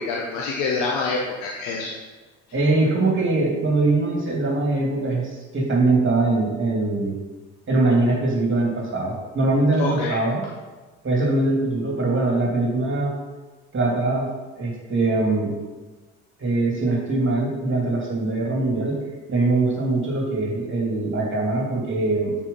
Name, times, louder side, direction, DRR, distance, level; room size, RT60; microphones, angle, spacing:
voice 1, 0.0-1.9 9.8-10.2, left 4 dB, 80° left, -1 dB, 1.0 m, -26 dB
voice 2, 2.5-5.2 5.5-7.2 7.7-10.4 11.0-13.2 13.7-14.3 14.6-15.6 16.4-19.0 19.3-22.4, right 2 dB, 35° right, -1 dB, 2.6 m, -22 dB
7.3 x 4.6 x 5.5 m, 1.3 s
hypercardioid pair, 65°, 33 cm